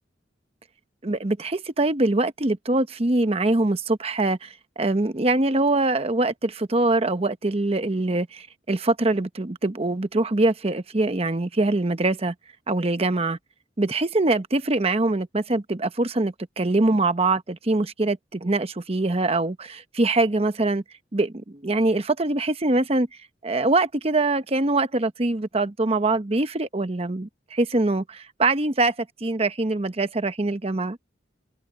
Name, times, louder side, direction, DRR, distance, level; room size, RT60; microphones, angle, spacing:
voice 1, 1.0-12.3 12.7-13.4 13.8-20.8 21.1-23.1 23.4-28.9 29.2-31.0, right 2 dB, 30° right, 0.9 m, -23 dB
open air
head